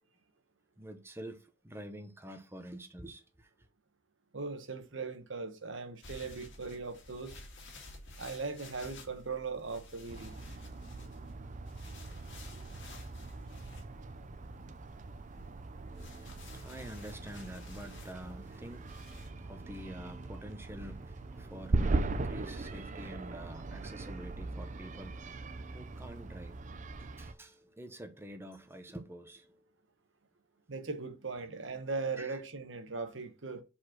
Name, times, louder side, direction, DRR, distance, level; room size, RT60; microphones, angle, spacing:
voice 1, 0.8-3.5 15.9-29.6 32.2-32.4, right 1 dB, 10° right, 0.9 m, -48 dB
voice 2, 4.3-7.3 8.2-10.3 30.7-33.6, right 4 dB, 65° right, 1.1 m, -39 dB
sound 1, 6.0-19.3, left 2 dB, 65° left, 2.1 m, -53 dB
sound 2, 10.1-27.3, right 3 dB, 40° right, 0.5 m, -39 dB
5.1 x 4.3 x 5.8 m
head